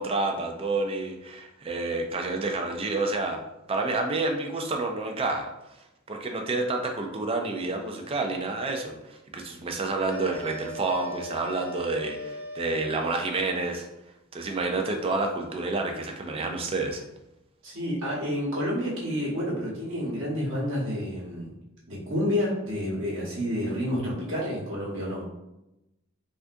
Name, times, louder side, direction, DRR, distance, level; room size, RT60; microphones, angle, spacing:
voice 1, 0.0-3.4 3.7-5.5 6.1-13.9 14.3-17.0, right 3 dB, 25° right, 3 dB, 0.3 m, -29 dB
sound 1, 10.1-13.6, equal, 90° right, 0.9 m, -39 dB
voice 2, 17.6-21.5 21.9-25.2, equal, 65° right, -5 dB, 1.1 m, -29 dB
3.3 x 2.5 x 2.5 m, 0.91 s
head